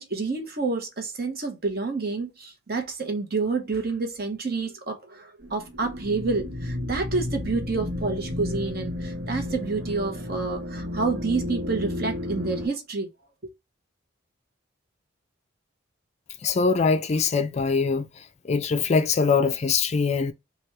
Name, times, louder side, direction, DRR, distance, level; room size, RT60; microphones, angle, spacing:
voice 1, 0.0-13.1, right 4 dB, 50° right, 0.9 m, -29 dB
sound 1, 5.4-12.7, left 1 dB, 75° right, 1.2 m, -32 dB
voice 2, 16.4-18.1 18.4-20.3, left 5 dB, 35° left, 0.4 m, -22 dB
3.4 x 2.3 x 4.3 m
head